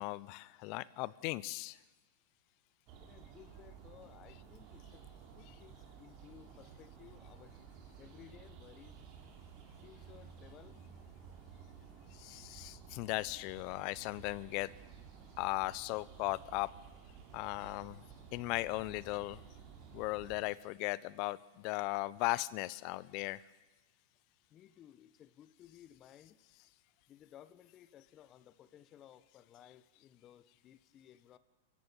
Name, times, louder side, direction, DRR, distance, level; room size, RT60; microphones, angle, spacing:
voice 1, 0.0-1.8 12.1-14.7 15.4-16.7 17.3-18.0 18.3-19.4 19.9-23.4, left 20 dB, 50° left, 20 dB, 0.9 m, -37 dB
sound 1, 2.9-20.4, right 7 dB, 45° right, 4.1 m, -54 dB
voice 2, 3.0-5.0 5.3-7.6 7.9-9.0 9.8-10.8 24.5-26.4 27.1-31.4, left 11 dB, 35° left, 14 dB, 1.3 m, -58 dB
26.0 x 15.0 x 9.2 m, 1.2 s
hypercardioid pair, 115°, 0 cm